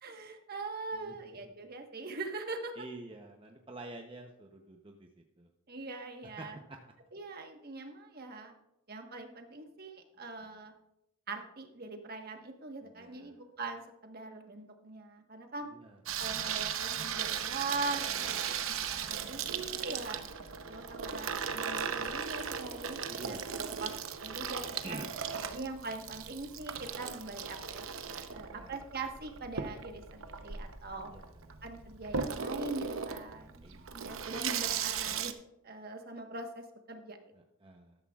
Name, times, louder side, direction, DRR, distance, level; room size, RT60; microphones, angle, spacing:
voice 1, 0.0-2.9 5.7-6.6 7.1-8.5 8.9-10.7 11.3-15.7 16.2-20.2 20.7-23.9 24.2-25.0 25.5-31.1 31.6-33.6 33.9-35.3 35.6-37.2, right 3 dB, 45° right, 5 dB, 1.3 m, -42 dB
voice 2, 0.9-1.4 2.8-5.1 5.4-5.5 6.4-6.8 12.8-13.4 15.7-16.2 18.1-18.2 23.1-23.9 24.8-25.6 28.5-28.7 31.0-31.6 33.6-33.9 37.3-38.0, right 2 dB, 25° right, 3 dB, 0.7 m, -48 dB
Water tap faucet / Sink (filling or washing), 16.1-35.3, right 7 dB, 75° right, 0.8 m, -37 dB
13.0 x 12.5 x 2.4 m, 0.88 s
head